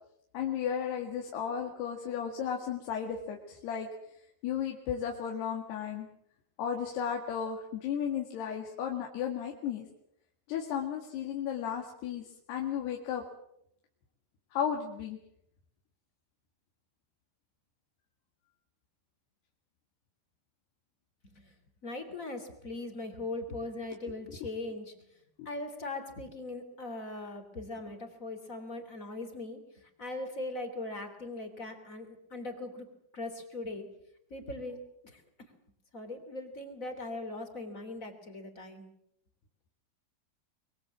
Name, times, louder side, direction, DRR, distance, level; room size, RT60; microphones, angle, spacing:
voice 1, 0.3-3.9 4.4-6.1 6.6-9.9 10.5-13.2 14.5-15.2 23.9-24.5 25.4-25.5, left 8 dB, 85° left, 1 dB, 4.2 m, -34 dB
voice 2, 21.8-24.9 25.4-32.9 33.1-33.9 34.3-35.2 35.9-38.9, left 2 dB, 20° left, 7 dB, 2.9 m, -40 dB
24.5 x 22.5 x 7.4 m, 0.75 s
omnidirectional pair, 4.6 m